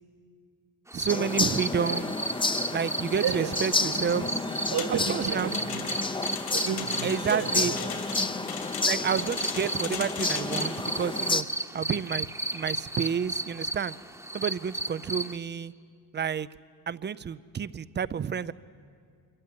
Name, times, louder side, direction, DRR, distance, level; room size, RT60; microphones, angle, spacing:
sound 1, 0.9-15.4, right 2 dB, 5° right, 1.0 m, -35 dB
voice 1, 0.9-2.2 2.7-4.3 4.9-5.5 7.0-7.7 8.8-11.5 11.7-12.3 12.5-14.0 14.3-15.7 16.1-16.5 16.9-18.5, right 7 dB, 30° right, 17 dB, 0.5 m, -30 dB
sound 2, 1.1-11.4, left 3 dB, 15° left, 0.6 m, -31 dB
voice 2, 3.2-4.4 4.7-5.9 6.5-8.0 8.7-8.8, right 7 dB, 65° right, 9 dB, 1.9 m, -33 dB
sound 3, 4.8-10.8, left 7 dB, 65° left, 2.8 m, -38 dB
25.0 x 14.5 x 9.8 m, 2.2 s
cardioid pair, 95°, 39 cm